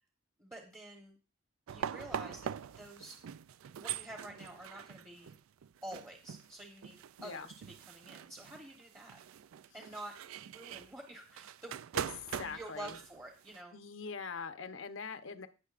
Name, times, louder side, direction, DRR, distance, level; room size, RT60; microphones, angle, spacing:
voice 1, 0.4-1.2 1.7-3.2 3.8-5.3 5.8-9.2 9.7-10.1 10.5-11.8 12.4-13.7, right 1 dB, 15° right, 1 dB, 1.1 m, -49 dB
sound 1, 1.7-13.6, right 9 dB, 85° right, 0.3 m, -43 dB
voice 2, 7.2-7.5 11.9-13.0 13.7-15.5, left 5 dB, 70° left, 8 dB, 0.9 m, -43 dB
17.5 x 6.4 x 2.5 m, 0.33 s
head